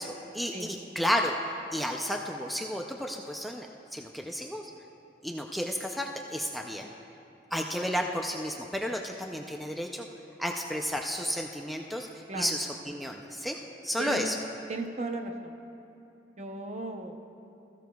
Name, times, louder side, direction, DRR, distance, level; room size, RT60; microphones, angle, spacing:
voice 1, 0.0-1.4 1.7-4.7 5.2-6.9 7.5-10.1 10.4-12.1 12.3-13.6 13.8-14.4, equal, ahead, 1 dB, 0.4 m, -32 dB
voice 2, 14.7-15.5 16.4-17.2, right 2 dB, 40° right, 5 dB, 0.8 m, -36 dB
20.5 x 14.5 x 2.3 m, 2.7 s
head